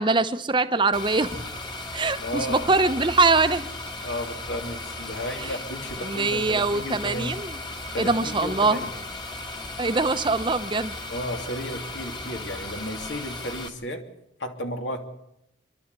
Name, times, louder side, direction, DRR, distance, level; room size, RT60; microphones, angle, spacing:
voice 1, 0.0-1.4 1.9-3.6 5.4-5.5 6.0-7.6 8.0-8.8 9.8-11.0, right 3 dB, 25° right, 10 dB, 0.9 m, -23 dB
sound 1, 0.9-13.7, left 2 dB, 25° left, 1.6 m, -36 dB
voice 2, 2.2-2.7 4.0-7.3 7.9-9.0 11.1-14.0 14.4-15.0, equal, 80° left, 4 dB, 2.7 m, -33 dB
28.0 x 12.0 x 8.2 m, 0.83 s
head